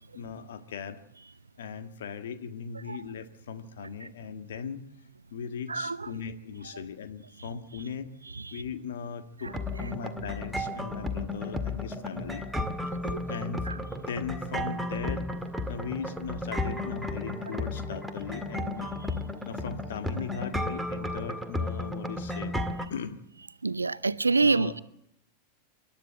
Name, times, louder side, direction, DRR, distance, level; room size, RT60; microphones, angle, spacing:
voice 1, 0.1-1.0 1.6-4.8 5.3-8.1 8.5-12.4 13.3-15.3 15.7-18.9 19.4-22.6 22.9-23.2 24.4-24.7, left 6 dB, 60° left, 1.7 m, -38 dB
voice 2, 5.7-6.1 8.4-8.6 12.9-13.2 13.7-13.8 23.6-24.8, right 4 dB, 80° right, 0.7 m, -27 dB
sound 1, 9.5-22.9, left 1 dB, 5° right, 1.9 m, -33 dB
28.0 x 12.5 x 7.8 m
figure-of-eight pair, 90°, 0 cm